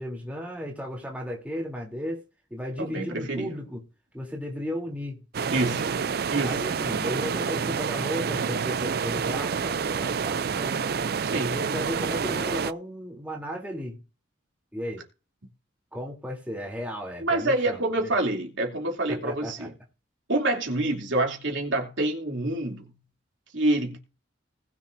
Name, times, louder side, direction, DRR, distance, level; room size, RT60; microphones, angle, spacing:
voice 1, 0.0-2.2 2.5-3.8 4.1-5.2 6.4-10.9 11.4-14.0 14.7-15.0 15.9-18.1 19.1-19.7, equal, 10° right, 3.3 m, -35 dB
voice 2, 2.8-3.6 5.5-6.0 6.3-6.6 11.2-11.5 17.2-19.7 20.3-22.9 23.5-24.0, right 2 dB, 80° right, 3.0 m, -27 dB
sound 1, 5.3-12.7, right 6 dB, 55° right, 0.5 m, -28 dB
20.0 x 7.3 x 2.7 m
head